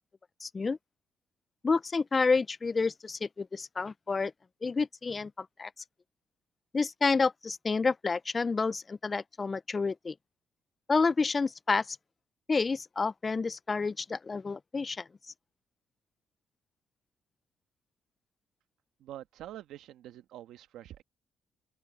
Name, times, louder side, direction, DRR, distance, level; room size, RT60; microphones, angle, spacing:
voice 1, 0.4-0.8 1.6-4.3 4.6-5.7 6.7-10.1 10.9-12.0 12.5-15.1, left 4 dB, 30° left, 0.3 m, -29 dB
voice 2, 19.0-21.0, right 12 dB, 85° right, 1.2 m, -46 dB
open air
cardioid pair, 90°, 0 cm